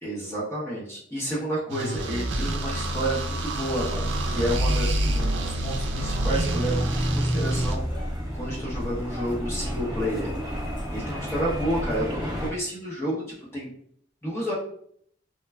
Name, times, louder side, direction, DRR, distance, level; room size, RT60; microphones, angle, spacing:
voice 1, 0.0-7.8 8.3-10.3 10.9-13.2 13.5-13.7 14.2-14.5, equal, 15° left, -6 dB, 0.7 m, -30 dB
sound 1, 1.7-7.8, right 1 dB, 70° right, 0.4 m, -27 dB
sound 2, 2.8-12.5, equal, 20° right, 0.9 m, -32 dB
3.1 x 2.2 x 2.2 m, 0.64 s
head